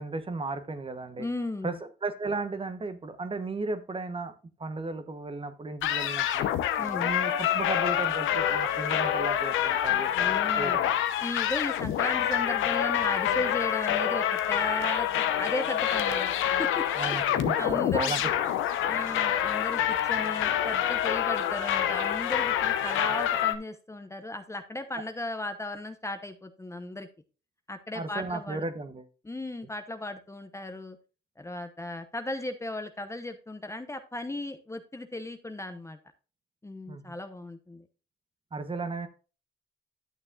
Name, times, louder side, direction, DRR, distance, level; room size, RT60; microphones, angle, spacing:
voice 1, 0.0-1.3 1.6-4.3 4.6-6.5 7.0-11.0 17.0-18.3 27.9-29.1 36.9-37.1 38.5-39.1, right 3 dB, 25° right, 10 dB, 1.0 m, -35 dB
voice 2, 1.2-1.8 6.8-7.1 10.1-10.8 11.2-16.3 16.6-17.2 17.6-18.1 18.9-27.1 27.7-28.6 29.2-31.0 31.4-36.0 36.6-37.9, left 2 dB, 15° left, 8 dB, 0.9 m, -36 dB
sound 1, 5.8-23.5, left 10 dB, 90° left, 0.9 m, -27 dB
11.0 x 6.8 x 2.5 m, 0.35 s
cardioid pair, 90°, 20 cm